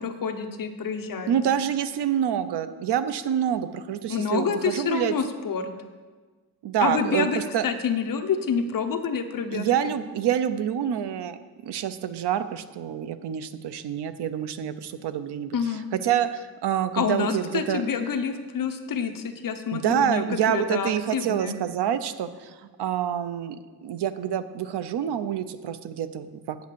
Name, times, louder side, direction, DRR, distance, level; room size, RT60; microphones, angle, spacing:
voice 1, 0.0-1.4 4.1-5.7 6.8-9.9 15.5-15.9 16.9-21.5, left 6 dB, 55° left, 6 dB, 1.0 m, -28 dB
voice 2, 1.3-5.1 6.6-7.3 7.5-7.6 9.5-11.4 11.6-15.6 16.0-17.8 19.7-26.7, right 9 dB, 85° right, 11 dB, 0.8 m, -27 dB
9.0 x 8.0 x 6.9 m, 1.4 s
wide cardioid pair, 145°, 39 cm